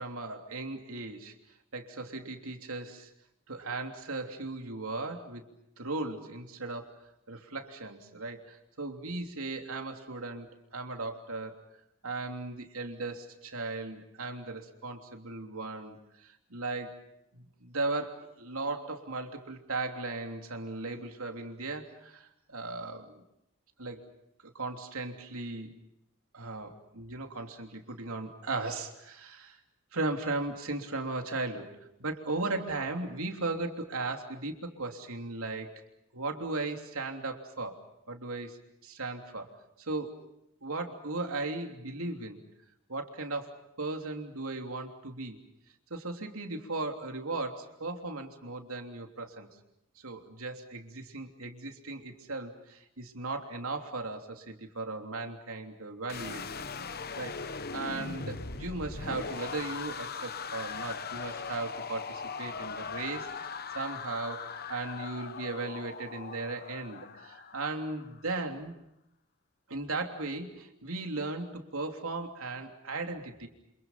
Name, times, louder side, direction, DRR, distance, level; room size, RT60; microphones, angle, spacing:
voice 1, 0.0-1.3 1.7-3.1 3.5-5.4 5.8-11.6 12.0-17.0 17.3-23.2 23.8-24.1 24.5-25.8 26.3-29.6 29.9-35.7 36.1-37.8 38.1-38.6 38.8-39.5 39.8-40.2 40.6-42.4 42.9-43.5 43.8-45.4 45.9-49.5 50.0-68.7 69.7-73.5, right 3 dB, 80° right, 4 dB, 3.2 m, -37 dB
sound 1, 56.1-68.1, left 5 dB, 45° left, 1.1 m, -40 dB
28.5 x 27.5 x 5.8 m, 0.80 s
head